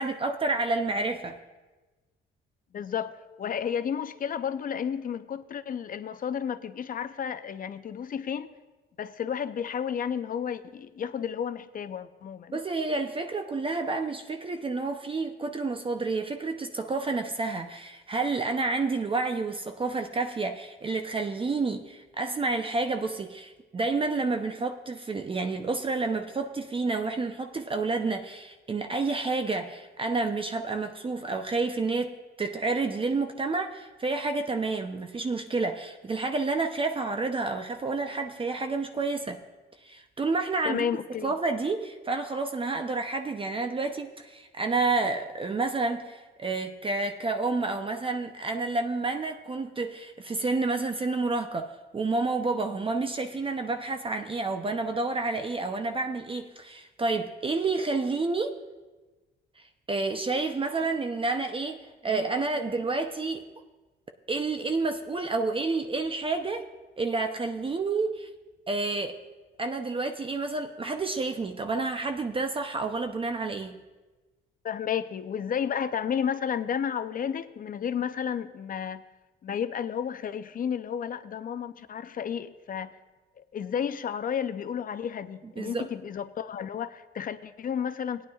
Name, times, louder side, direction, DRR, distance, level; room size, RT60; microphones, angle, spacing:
voice 1, 0.0-1.4 12.5-39.4 39.8-40.9 41.2-58.6 59.6-63.4 64.3-66.7 67.0-68.3 68.7-69.2 69.6-73.7 85.6-85.9, right 3 dB, 25° right, 5 dB, 0.6 m, -29 dB
voice 2, 2.7-8.5 9.0-12.6 40.6-41.3 74.6-79.0 79.4-82.9 83.4-88.3, left 8 dB, 45° left, 12 dB, 0.6 m, -32 dB
18.0 x 9.4 x 2.4 m, 1.2 s
cardioid pair, 90°, 20 cm